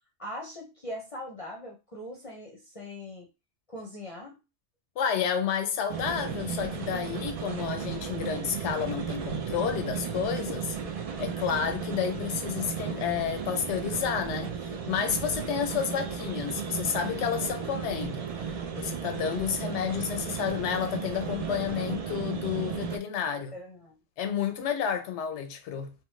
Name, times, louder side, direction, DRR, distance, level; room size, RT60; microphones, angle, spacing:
voice 1, 0.2-3.3 3.7-4.4 23.5-24.0, left 1 dB, 40° left, 0.5 m, -41 dB
voice 2, 5.0-10.8 11.2-18.3 18.7-23.5 24.2-25.9, left 8 dB, 85° left, 0.9 m, -30 dB
sound 1, 5.9-23.0, right 7 dB, 65° right, 0.3 m, -34 dB
2.9 x 2.1 x 3.1 m
omnidirectional pair, 1.1 m